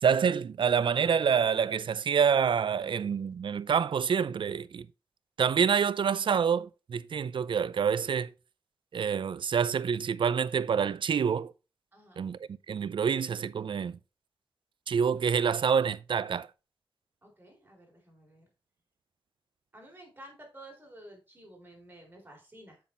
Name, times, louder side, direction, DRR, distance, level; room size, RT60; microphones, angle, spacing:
voice 1, 0.0-4.9 5.4-8.3 8.9-11.5 12.2-12.4 12.7-14.0 14.9-16.5, right 7 dB, 65° right, 0.5 m, -27 dB
voice 2, 11.9-12.2 17.2-18.4 19.7-22.8, right 1 dB, 20° right, 4.0 m, -52 dB
7.3 x 6.0 x 4.4 m
cardioid pair, 80°, 9 cm